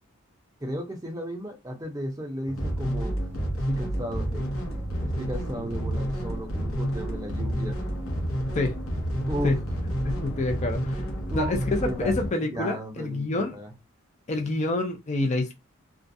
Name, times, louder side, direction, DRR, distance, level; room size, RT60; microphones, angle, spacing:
voice 1, 0.6-3.2 3.5-4.6 5.0-7.8 9.3-9.6 11.3-11.5 11.8-12.1 12.5-13.7, equal, 15° right, 0.6 m, -34 dB
sound 1, 2.5-12.3, equal, 85° left, 0.8 m, -30 dB
voice 2, 10.0-11.0 11.3-13.6 14.3-15.6, left 2 dB, 35° left, 0.4 m, -28 dB
2.3 x 2.1 x 2.6 m
head